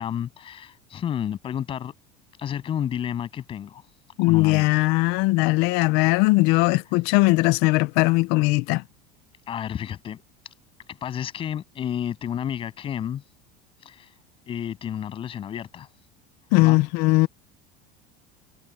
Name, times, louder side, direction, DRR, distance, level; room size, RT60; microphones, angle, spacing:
voice 1, 0.0-1.9 2.4-3.8 4.2-4.8 9.5-10.2 10.9-13.2 13.8-14.1 14.5-15.9 16.6-16.8, left 9 dB, 30° left, 7.8 m, -31 dB
voice 2, 4.2-8.8 16.5-17.3, left 23 dB, 60° left, 0.6 m, -19 dB
cardioid pair, 165°, 19 cm